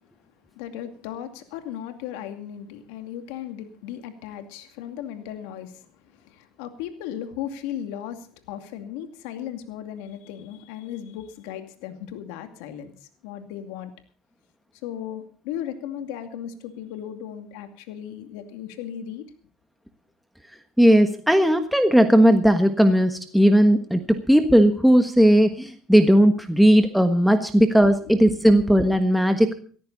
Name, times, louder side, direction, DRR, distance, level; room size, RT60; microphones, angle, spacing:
voice 1, 0.5-5.9 6.1-13.9 14.8-19.2 28.0-28.1, left 10 dB, 90° left, 2.4 m, -36 dB
voice 2, 20.8-29.5, equal, ahead, 1.4 m, -17 dB
19.0 x 14.0 x 4.1 m
cardioid pair, 110°, 0 cm